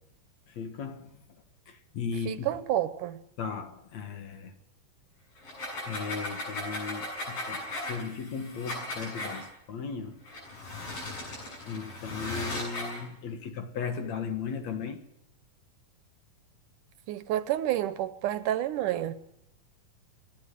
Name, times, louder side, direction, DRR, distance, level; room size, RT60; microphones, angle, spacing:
voice 1, 0.5-1.2 1.7-2.6 3.4-4.6 5.8-10.2 11.7-15.0, left 6 dB, 60° left, 2.6 m, -36 dB
voice 2, 2.3-3.2 17.1-19.1, right 12 dB, 75° right, 2.3 m, -29 dB
sound 1, 5.4-9.4 10.2-13.0, left 1 dB, 80° left, 9.6 m, -37 dB
26.5 x 10.5 x 10.0 m
omnidirectional pair, 3.8 m